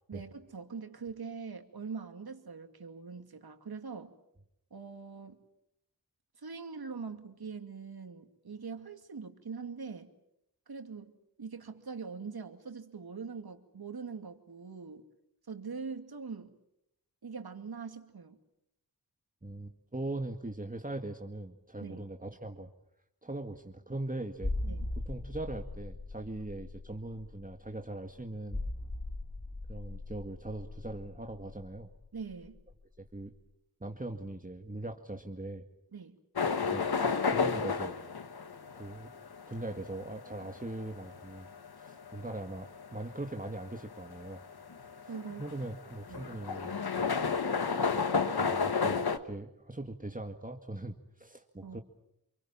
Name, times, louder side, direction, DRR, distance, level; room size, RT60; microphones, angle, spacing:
voice 1, 0.1-4.1 4.7-5.4 6.4-10.1 10.7-11.1 11.4-15.0 15.5-16.5 17.2-18.4 21.8-22.0 24.6-24.9 32.1-32.6 35.9-36.2 45.1-45.4 46.1-46.4 51.6-51.8, right 5 dB, 85° right, 6 dB, 2.5 m, -43 dB
voice 2, 19.4-22.7 23.2-24.5 25.1-28.6 29.7-31.9 33.0-33.3 33.8-35.7 36.6-36.9 37.3-38.0 38.7-39.1 39.5-41.5 41.8-44.4 45.0-45.1 45.4-46.8 48.4-51.8, right 2 dB, 20° right, 3 dB, 2.0 m, -40 dB
sound 1, 24.4-32.8 33.1-33.2, left 2 dB, 45° left, 2.8 m, -40 dB
sound 2, 36.4-49.2, left 5 dB, 85° left, 1.5 m, -32 dB
28.0 x 23.5 x 7.4 m, 0.79 s
cardioid pair, 45°, 37 cm